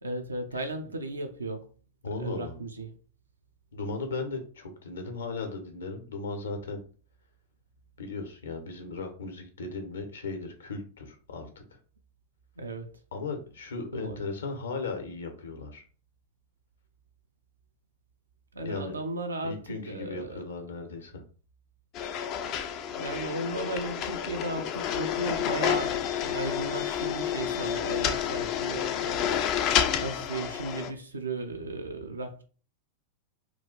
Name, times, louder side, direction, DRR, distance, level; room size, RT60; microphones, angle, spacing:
voice 1, 0.0-1.7 2.2-2.9 12.6-12.9 13.9-14.2 18.5-20.4 23.0-29.4 30.0-32.4, right 2 dB, 75° right, 0.6 m, -35 dB
voice 2, 2.0-2.6 3.7-6.8 8.0-11.5 13.1-15.8 18.6-18.9 19.4-21.2, left 3 dB, 70° left, 0.8 m, -36 dB
sound 1, 21.9-30.9, left 9 dB, 40° left, 0.4 m, -29 dB
3.1 x 2.4 x 3.8 m
figure-of-eight pair, 90°, 0 cm